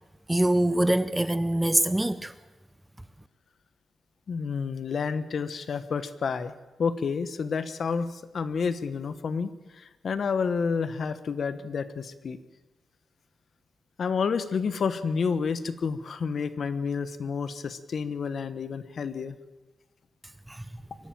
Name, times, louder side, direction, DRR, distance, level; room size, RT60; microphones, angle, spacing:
voice 1, 0.3-2.3 20.5-20.6, right 1 dB, 10° right, 0.6 m, -24 dB
voice 2, 4.3-6.5 6.8-12.4 14.0-19.4, left 5 dB, 50° left, 1.2 m, -30 dB
23.5 x 12.0 x 9.2 m
wide cardioid pair, 140°, 0 cm